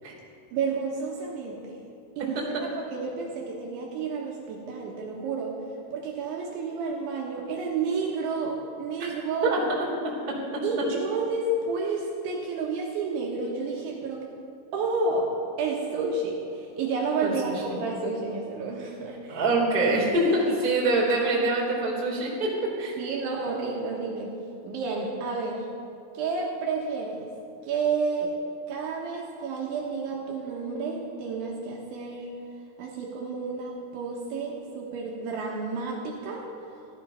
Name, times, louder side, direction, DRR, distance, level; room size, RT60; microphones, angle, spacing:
voice 1, 0.5-1.8 2.2-5.5 5.9-9.5 10.6-14.2 14.7-15.3 15.6-19.4 20.3-20.5 23.0-24.3 24.6-25.7 26.2-27.3 27.6-28.3 28.7-32.3 32.8-36.4, right 4 dB, 70° right, -2 dB, 3.4 m, -30 dB
voice 2, 17.2-17.5 19.3-22.5 22.8-22.9, right 2 dB, 15° right, -6 dB, 2.8 m, -24 dB
15.0 x 12.0 x 5.7 m, 2.5 s
omnidirectional pair, 6.0 m